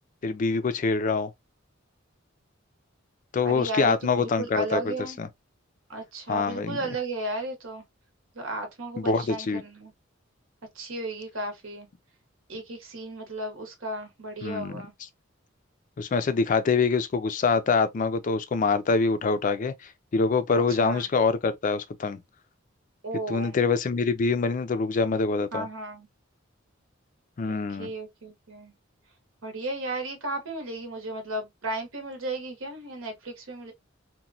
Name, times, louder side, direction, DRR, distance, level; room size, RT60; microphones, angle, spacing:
voice 1, 0.2-1.3 3.3-5.3 6.3-6.8 9.0-9.6 14.4-14.8 16.0-22.2 23.3-25.7 27.4-27.9, left 4 dB, 40° left, 0.3 m, -25 dB
voice 2, 3.4-5.2 5.9-7.8 8.3-9.9 10.7-11.9 12.5-14.9 20.8-21.0 23.0-23.6 25.5-26.1 27.5-28.7 29.4-33.7, right 2 dB, 85° right, 0.9 m, -34 dB
2.9 x 2.1 x 2.5 m
head